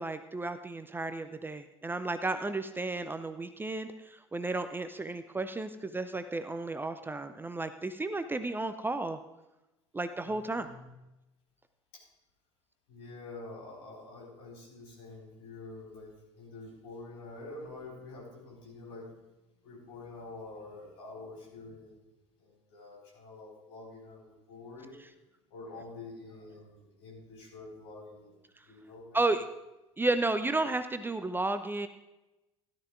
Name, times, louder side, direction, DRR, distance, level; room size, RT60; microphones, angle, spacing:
voice 1, 0.0-9.2 9.9-10.7 29.1-29.4 30.0-31.9, right 2 dB, 15° right, 10 dB, 0.6 m, -33 dB
voice 2, 10.2-10.9 11.9-12.1 12.9-19.1 19.6-21.9 22.4-25.0 25.5-28.4 28.7-29.2, left 2 dB, 65° left, -2 dB, 4.9 m, -47 dB
17.0 x 11.5 x 2.6 m, 1.0 s
figure-of-eight pair, 60°, 15 cm